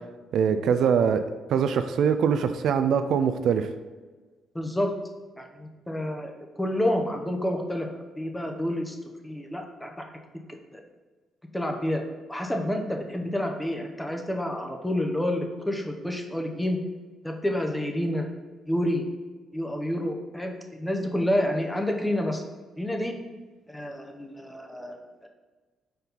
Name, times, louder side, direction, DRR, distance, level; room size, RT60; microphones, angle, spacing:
voice 1, 0.3-1.2 1.5-3.7, right 7 dB, 70° right, 9 dB, 0.3 m, -23 dB
voice 2, 4.5-4.9 5.4-9.0 9.2-10.0 10.5-10.8 11.5-12.0 12.3-16.8 17.2-18.3 18.7-19.0 19.5-22.4 22.8-23.2 23.7-25.0 25.2-25.3, left 1 dB, 10° left, 2 dB, 0.7 m, -29 dB
4.5 x 4.0 x 5.2 m, 1.3 s
cardioid pair, 90°, 0 cm